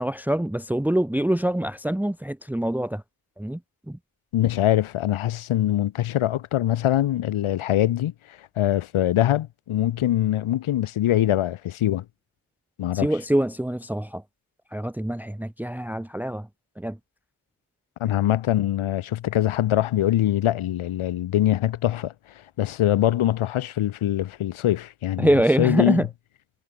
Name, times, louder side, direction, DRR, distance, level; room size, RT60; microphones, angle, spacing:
voice 1, 0.0-3.0 3.4-3.6 3.9-4.0 12.9-14.2 14.7-16.5 16.8-17.0 25.2-26.1, right 1 dB, 5° right, 1.1 m, -24 dB
voice 2, 4.3-8.1 8.6-12.0 12.8-13.1 18.0-22.1 22.6-25.3 25.6-26.0, left 13 dB, 80° left, 1.0 m, -23 dB
wide cardioid pair, 145°, 49 cm